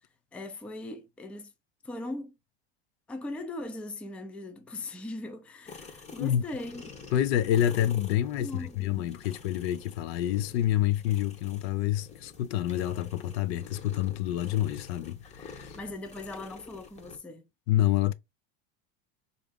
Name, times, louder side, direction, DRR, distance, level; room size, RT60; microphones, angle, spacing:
voice 1, 0.3-1.5 1.8-2.3 3.1-6.8 8.4-9.1 15.7-17.5, left 2 dB, 5° left, 0.3 m, -39 dB
sound 1, 5.6-17.2, left 4 dB, 20° left, 0.8 m, -49 dB
voice 2, 7.1-15.8 17.7-18.1, left 12 dB, 75° left, 0.5 m, -28 dB
3.4 x 2.6 x 3.4 m
supercardioid pair, 130°, 32 cm